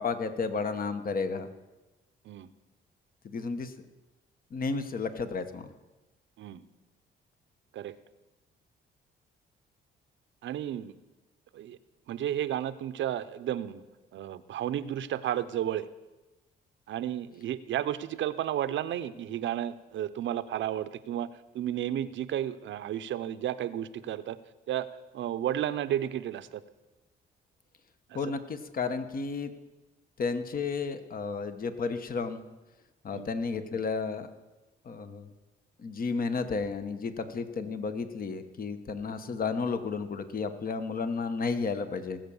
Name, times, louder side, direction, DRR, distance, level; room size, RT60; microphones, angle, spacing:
voice 1, 0.0-1.5 3.2-3.7 4.5-5.7 28.1-29.5 30.2-32.4 33.0-34.3 34.8-35.3 35.8-42.2, left 4 dB, 45° left, 9 dB, 1.2 m, -32 dB
voice 2, 10.4-11.0 11.5-11.8 12.1-13.8 14.1-15.9 16.9-24.4 24.7-24.9 25.1-26.6 28.1-28.2 33.1-33.3, right 11 dB, 70° right, 14 dB, 0.7 m, -32 dB
19.0 x 7.6 x 7.1 m, 1.1 s
cardioid pair, 90°, 20 cm